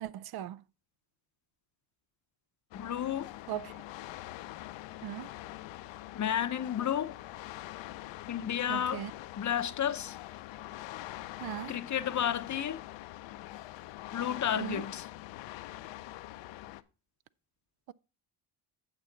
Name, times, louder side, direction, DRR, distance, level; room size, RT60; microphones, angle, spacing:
voice 1, 0.0-0.6 3.5-3.7 5.0-5.3 8.7-9.1 11.4-11.7 14.6-14.8, right 12 dB, 55° right, 0.5 m, -38 dB
sound 1, 2.7-16.8, left 16 dB, 70° left, 0.7 m, -44 dB
voice 2, 2.7-3.3 6.1-7.2 8.3-9.0 9.4-10.2 11.7-12.8 14.1-15.1, left 9 dB, 40° left, 0.7 m, -32 dB
9.0 x 6.9 x 3.9 m
supercardioid pair, 70°, 45 cm